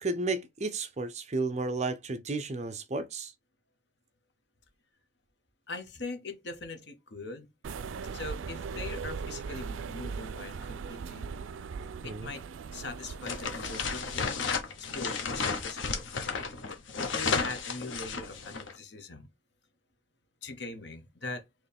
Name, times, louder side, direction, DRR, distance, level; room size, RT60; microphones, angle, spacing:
voice 1, 0.0-3.3 12.0-12.3, right 3 dB, 35° right, 0.6 m, -33 dB
voice 2, 5.7-7.5 8.1-11.3 12.0-12.4 12.7-14.5 14.9-16.1 17.0-19.3 20.4-21.4, left 3 dB, 60° left, 1.1 m, -41 dB
sound 1, 7.6-14.6, right 5 dB, 85° right, 0.4 m, -39 dB
sound 2, 13.2-18.7, left 5 dB, 80° left, 1.0 m, -33 dB
4.5 x 3.2 x 3.4 m
head